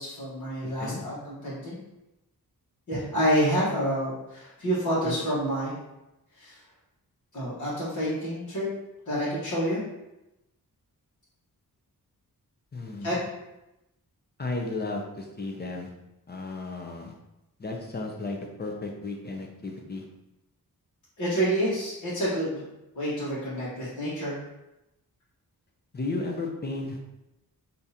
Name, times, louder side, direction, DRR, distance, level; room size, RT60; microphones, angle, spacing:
voice 1, 0.0-1.8 2.9-5.7 6.3-6.6 7.3-8.7 9.0-9.8 13.0-13.2 21.2-22.6 22.9-24.4, equal, 50° left, -9 dB, 1.3 m, -28 dB
voice 2, 0.6-1.0 5.0-5.1 12.7-13.3 14.4-15.9 16.3-17.1 17.6-20.1 25.9-27.0, left 3 dB, 25° left, 1 dB, 0.5 m, -34 dB
3.5 x 2.6 x 2.8 m, 0.93 s
wide cardioid pair, 120°, 37 cm